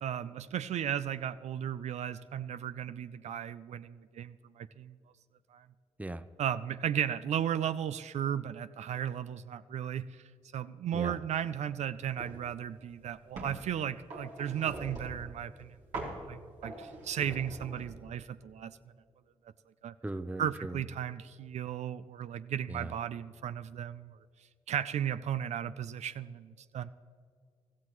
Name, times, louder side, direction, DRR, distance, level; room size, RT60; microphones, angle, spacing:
voice 1, 0.0-5.0 5.5-5.7 6.4-10.2 10.5-15.8 16.2-18.8 19.8-19.9 20.4-24.2 24.7-26.9, right 9 dB, 70° right, 13 dB, 0.4 m, -35 dB
sound 1, 12.2-12.4 12.8-13.6 14.1-15.3 15.9-16.2 16.6-18.0, right 2 dB, 85° right, 2.5 m, -42 dB
voice 2, 20.0-20.8 22.7-22.9, right 2 dB, 10° right, 13 dB, 0.6 m, -38 dB
16.0 x 13.5 x 3.1 m, 2.1 s
supercardioid pair, 45°, 12 cm